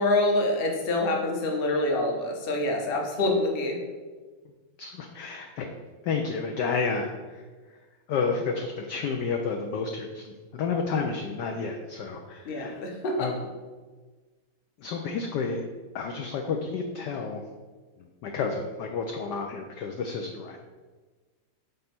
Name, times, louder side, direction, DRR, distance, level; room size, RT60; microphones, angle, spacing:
voice 1, 0.0-3.8 12.4-13.3, left 2 dB, 40° left, 0 dB, 0.8 m, -26 dB
voice 2, 4.8-5.7 6.0-7.4 8.1-12.8 13.2-13.4 14.8-15.6 15.9-17.4 18.2-20.6, left 5 dB, 80° left, 3 dB, 0.9 m, -31 dB
5.4 x 4.0 x 5.8 m, 1.4 s
omnidirectional pair, 2.4 m